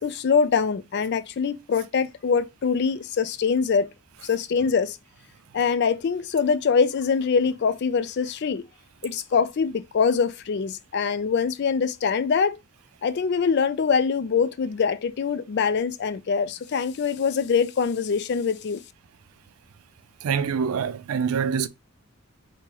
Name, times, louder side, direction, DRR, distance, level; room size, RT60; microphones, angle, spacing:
voice 1, 0.0-3.9 4.2-5.0 5.5-8.6 9.0-12.6 13.0-18.8, left 6 dB, 50° left, 0.3 m, -24 dB
voice 2, 20.2-21.7, right 6 dB, 80° right, 0.4 m, -25 dB
2.9 x 2.9 x 3.6 m
head